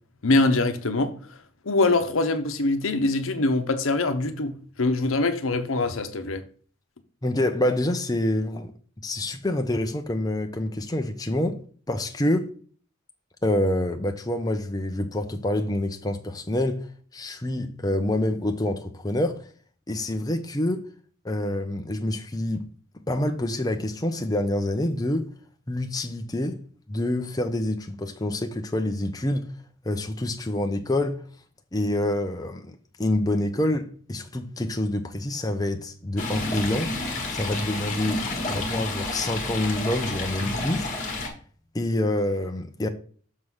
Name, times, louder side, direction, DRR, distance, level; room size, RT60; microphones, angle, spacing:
voice 1, 0.2-1.1 1.6-6.4, left 2 dB, 75° left, 0.9 m, -23 dB
voice 2, 7.2-8.7 9.0-11.6 11.9-12.5 13.4-16.8 17.1-19.4 19.9-20.9 21.2-22.6 23.1-25.3 25.7-26.6 26.9-29.5 29.9-31.2 31.7-36.9 37.3-38.2 38.5-40.9 41.7-42.9, left 1 dB, 20° left, 0.6 m, -27 dB
Stream, 36.2-41.3, left 2 dB, 35° left, 1.6 m, -30 dB
6.4 x 3.8 x 6.1 m
head